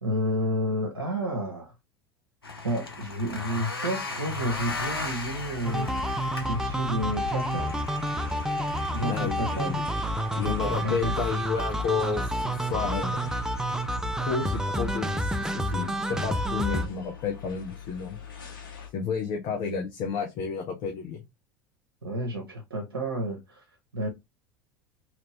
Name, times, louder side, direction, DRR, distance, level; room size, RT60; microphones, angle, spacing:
voice 1, 0.0-1.7 2.6-5.9 6.5-7.7 8.9-9.8 10.4-11.1 22.0-24.1, equal, 80° right, 0.7 m, -31 dB
sound 1, 2.4-13.9, left 3 dB, 80° left, 0.7 m, -39 dB
sound 2, 4.4-18.9, left 7 dB, 65° left, 1.1 m, -43 dB
sound 3, 5.7-16.9, right 1 dB, 5° right, 0.4 m, -29 dB
voice 2, 9.0-10.1 10.3-13.3 14.2-18.2 18.9-21.2, left 6 dB, 40° left, 0.7 m, -31 dB
2.9 x 2.6 x 3.1 m
figure-of-eight pair, 75°, 12 cm